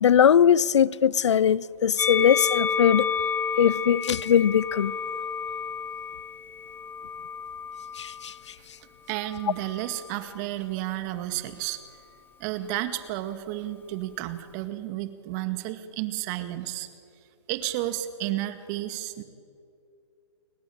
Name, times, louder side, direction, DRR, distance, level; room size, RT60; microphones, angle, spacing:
voice 1, 0.0-3.1 3.6-5.0 8.0-8.3, left 8 dB, 75° left, 0.6 m, -20 dB
Musical instrument, 2.0-8.4 9.2-10.2, left 6 dB, 15° left, 1.0 m, -31 dB
voice 2, 9.1-11.8 12.4-16.9 17.5-19.2, right 14 dB, 35° right, 2.1 m, -32 dB
29.5 x 21.5 x 8.7 m
hypercardioid pair, 135°, 15 cm